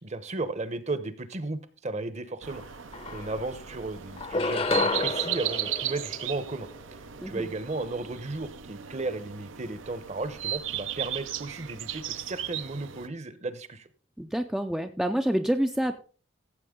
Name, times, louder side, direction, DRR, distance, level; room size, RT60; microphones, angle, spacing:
voice 1, 0.0-2.6 3.1-13.9, right 2 dB, 35° right, 13 dB, 0.9 m, -35 dB
sound 1, 2.4-13.1, right 12 dB, 75° right, 0.7 m, -36 dB
sound 2, 2.5-2.6 2.9-3.7 4.2-6.8, left 3 dB, 30° left, 0.7 m, -30 dB
voice 2, 14.2-16.0, equal, 5° right, 6 dB, 0.4 m, -27 dB
14.5 x 7.7 x 3.7 m, 0.38 s
head